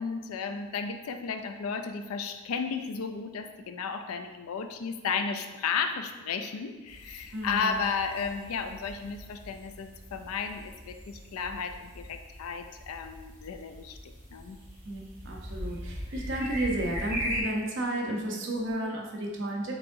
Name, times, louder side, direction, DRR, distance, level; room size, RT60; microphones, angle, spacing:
voice 1, 0.0-14.6, left 5 dB, 90° left, 7 dB, 0.4 m, -34 dB
sound 1, 6.9-17.4, equal, 10° right, 1.3 m, -40 dB
voice 2, 7.3-7.7 14.8-19.8, right 1 dB, 60° right, -1 dB, 0.7 m, -32 dB
4.8 x 3.7 x 2.6 m, 1.2 s
head